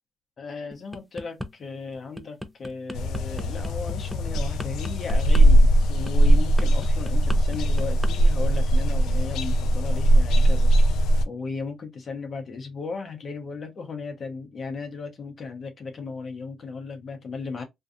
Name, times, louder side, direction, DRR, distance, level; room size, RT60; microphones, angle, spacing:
voice 1, 0.4-17.6, left 4 dB, 45° left, 0.7 m, -36 dB
sound 1, 0.7-1.5 1.9-8.1 8.4-8.7, equal, ahead, 0.4 m, -38 dB
sound 2, 2.9-11.2, right 1 dB, 85° left, 0.4 m, -20 dB
2.5 x 2.3 x 2.5 m
cardioid pair, 90°, 0 cm